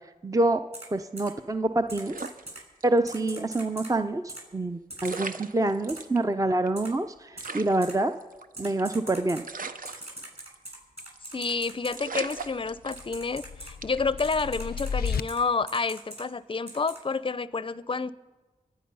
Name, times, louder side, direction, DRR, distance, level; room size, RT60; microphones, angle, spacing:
voice 1, 0.2-0.6 0.9-2.2 2.8-8.1 8.6-9.4, right 2 dB, 20° right, 9 dB, 0.6 m, -26 dB
Typing, 0.7-0.8 1.2-1.3 1.9-2.6 3.1-3.9 4.3-4.4 4.9-5.2 5.9-6.0 6.8-6.9 7.4-7.5 7.8-7.9 8.6-9.4 9.8-11.9 12.3-12.4 12.9-13.7 14.2-15.4 15.7-16.2 16.7-17.0, right 1 dB, 45° right, 7.1 m, -41 dB
sound 1, 2.0-3.2 3.5-3.6 4.7-4.8 5.0-6.2 6.7-6.8 6.9-7.0 7.4-8.9 9.4-10.7 11.0-11.3 11.6-11.7 12.0-13.3 13.8-14.1, right 4 dB, 65° right, 0.8 m, -39 dB
voice 2, 11.3-18.1, left 4 dB, 35° left, 17 dB, 0.5 m, -29 dB
sound 2, 12.4-15.2, left 6 dB, 85° left, 0.4 m, -34 dB
24.5 x 9.3 x 5.5 m, 1.3 s
cardioid pair, 45°, 16 cm